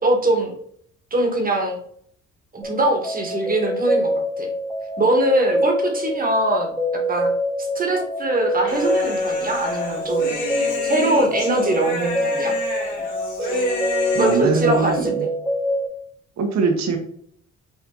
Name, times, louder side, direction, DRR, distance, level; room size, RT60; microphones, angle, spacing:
voice 1, 0.0-0.5 1.1-1.8 2.5-4.5 5.0-7.3 7.6-10.3 10.8-12.5 14.2-15.3, right 2 dB, 30° right, 2 dB, 1.3 m, -22 dB
sound 1, 2.6-15.9, equal, 5° left, 1.1 m, -25 dB
Human voice, 8.7-15.1, left 3 dB, 75° left, 1.8 m, -29 dB
voice 2, 14.1-15.3 16.4-17.0, right 5 dB, 65° right, 4 dB, 1.0 m, -22 dB
5.5 x 2.6 x 3.8 m, 0.64 s
cardioid pair, 90°, 30 cm